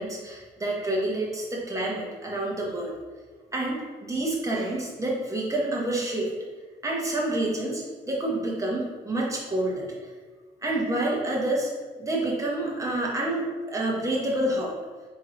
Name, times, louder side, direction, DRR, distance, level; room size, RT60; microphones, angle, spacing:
voice 1, 0.0-2.9 3.5-6.3 6.8-10.1 10.6-11.7 12.0-14.7, right 1 dB, 15° right, -3 dB, 1.4 m, -28 dB
3.8 x 3.1 x 4.0 m, 1.4 s
supercardioid pair, 60°, 19 cm